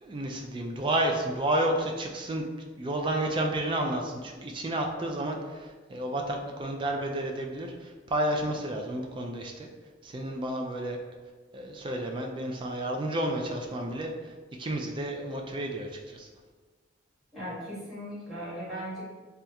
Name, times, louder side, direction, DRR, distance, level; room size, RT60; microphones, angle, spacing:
voice 1, 0.0-2.5 2.8-9.7 10.0-11.0 11.5-14.3 14.6-16.3, right 1 dB, 25° right, 2 dB, 0.3 m, -31 dB
voice 2, 17.3-19.0, equal, ahead, -10 dB, 1.3 m, -38 dB
3.3 x 2.3 x 2.7 m, 1.4 s
head